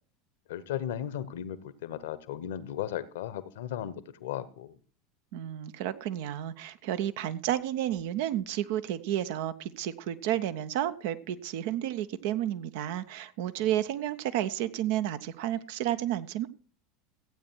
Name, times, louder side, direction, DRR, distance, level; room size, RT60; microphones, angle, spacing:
voice 1, 0.5-4.8 13.6-13.7, left 11 dB, 65° left, 16 dB, 1.0 m, -36 dB
voice 2, 5.3-16.5, right 12 dB, 60° right, 13 dB, 0.8 m, -31 dB
15.0 x 8.7 x 4.5 m, 0.43 s
figure-of-eight pair, 75°, 0 cm